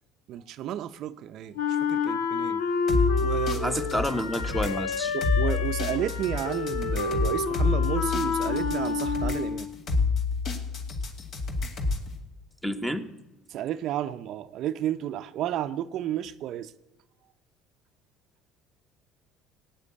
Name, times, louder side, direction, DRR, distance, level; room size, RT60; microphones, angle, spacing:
voice 1, 0.3-2.6 3.2-3.8 5.1-9.7 13.5-16.7, right 11 dB, 60° right, 0.6 m, -32 dB
Wind instrument woodwind instrument, 1.6-9.7, left 5 dB, 85° left, 1.2 m, -29 dB
sound 1, 2.9-12.1, left 4 dB, 50° left, 2.2 m, -28 dB
voice 2, 3.6-5.2 12.6-13.0, equal, 5° left, 1.2 m, -29 dB
16.0 x 9.2 x 8.5 m
cardioid pair, 115°, 0 cm